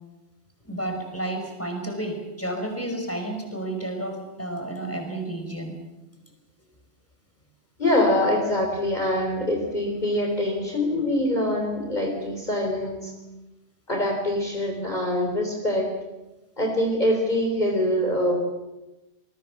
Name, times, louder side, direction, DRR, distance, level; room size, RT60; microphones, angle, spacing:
voice 1, 0.6-5.8, right 1 dB, 10° left, 4 dB, 5.0 m, -31 dB
voice 2, 7.8-13.1 13.9-15.9 16.6-18.4, left 1 dB, 40° left, 1 dB, 4.0 m, -24 dB
27.5 x 20.5 x 7.2 m, 1.0 s
omnidirectional pair, 1.2 m